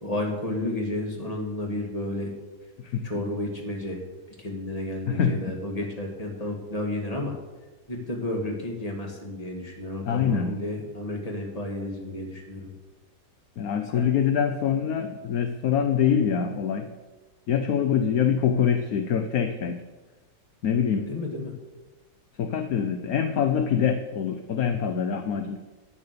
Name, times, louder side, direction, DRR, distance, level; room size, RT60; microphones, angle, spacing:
voice 1, 0.0-2.3 3.0-4.0 4.4-7.3 7.9-12.7 13.9-14.1 21.0-21.5, left 1 dB, 20° left, 0 dB, 2.2 m, -32 dB
voice 2, 5.1-5.4 10.1-10.6 13.6-16.9 17.5-19.8 20.6-21.1 22.4-25.6, left 8 dB, 60° left, 7 dB, 1.1 m, -24 dB
10.5 x 9.7 x 6.8 m, 1.2 s
omnidirectional pair, 2.0 m